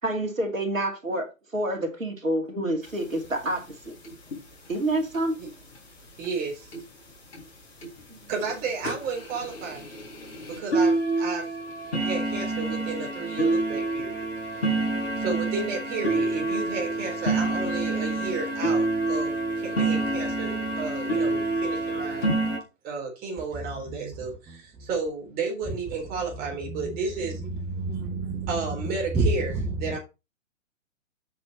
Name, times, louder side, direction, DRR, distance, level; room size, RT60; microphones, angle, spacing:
voice 1, 0.0-3.9 4.7-5.4, right 1 dB, 75° right, 3.0 m, -28 dB
sound 1, 2.9-3.0 3.2-3.3 3.5-3.7 4.0-4.4 5.1-5.2 5.8-5.9 6.2-6.3 6.7-6.8 7.3-7.4 7.8-8.0 8.4-8.5 8.8-22.6, right 2 dB, 50° left, 4.4 m, -27 dB
voice 2, 6.2-6.7 8.3-9.9 10.4-11.5 12.0-14.2 15.2-22.3 22.8-27.4 28.5-30.0, right 4 dB, 20° right, 4.0 m, -32 dB
voice 3, 27.4-28.5 29.1-29.3 29.5-29.6, right 3 dB, 5° right, 0.6 m, -28 dB
8.6 x 6.2 x 4.3 m
figure-of-eight pair, 125°, 40 cm